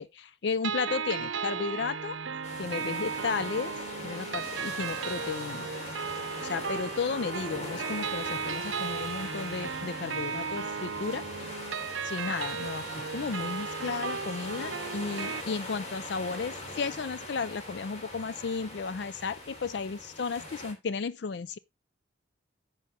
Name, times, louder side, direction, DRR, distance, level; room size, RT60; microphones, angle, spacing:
voice 1, 0.0-2.2 2.6-3.7 4.0-5.7 6.4-11.5 12.0-21.6, left 5 dB, 60° left, 0.4 m, -34 dB
sound 1, 0.6-15.4, right 6 dB, 80° right, 0.7 m, -35 dB
sound 2, 2.4-20.7, left 1 dB, 35° left, 3.1 m, -41 dB
10.5 x 6.3 x 4.2 m
head